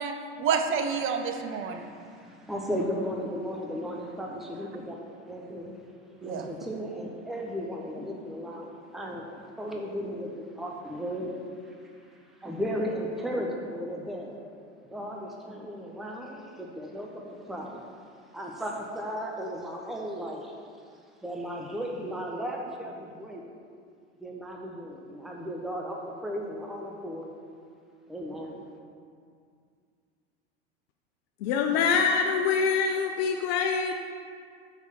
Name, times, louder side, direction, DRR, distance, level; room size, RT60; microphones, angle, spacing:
voice 1, 0.0-1.8 6.2-6.5, right 6 dB, 35° right, 6 dB, 0.8 m, -29 dB
voice 2, 1.4-5.0 5.3-5.8 6.2-11.3 11.6-11.8 12.4-14.3 14.9-17.8 18.3-20.5 21.2-23.4 24.2-27.3 28.1-28.5, equal, ahead, 0 dB, 0.9 m, -35 dB
voice 3, 31.4-33.9, left 5 dB, 60° left, 4 dB, 0.7 m, -25 dB
6.4 x 5.0 x 6.7 m, 2.2 s
hypercardioid pair, 85°, 35 cm